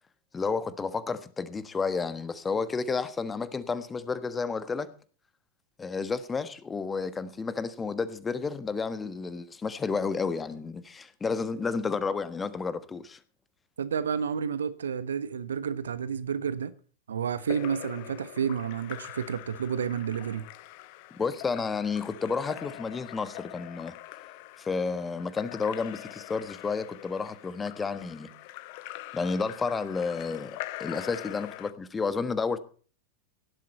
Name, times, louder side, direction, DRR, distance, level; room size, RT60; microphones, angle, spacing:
voice 1, 0.3-4.9 5.8-13.2 21.1-23.9 24.6-28.3 29.1-32.6, left 4 dB, 15° left, 1.4 m, -31 dB
voice 2, 13.8-16.7 17.1-20.5, right 7 dB, 65° right, 1.1 m, -30 dB
Splash splatter / Drip / Trickle dribble, 17.4-31.7, left 17 dB, 45° left, 0.9 m, -43 dB
17.5 x 12.0 x 4.3 m
figure-of-eight pair, 90°, 0 cm